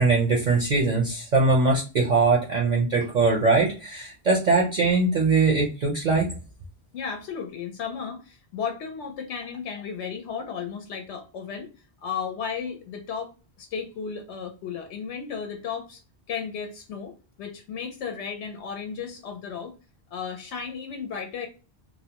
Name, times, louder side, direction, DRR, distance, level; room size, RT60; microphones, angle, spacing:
voice 1, 0.0-6.3, right 3 dB, 50° right, -1 dB, 0.6 m, -21 dB
voice 2, 6.9-11.7 12.0-13.3 13.6-16.0 16.3-17.1 17.4-19.7 20.1-21.5, left 6 dB, 90° left, 4 dB, 0.9 m, -34 dB
2.6 x 2.0 x 2.8 m, 0.33 s
omnidirectional pair, 1.1 m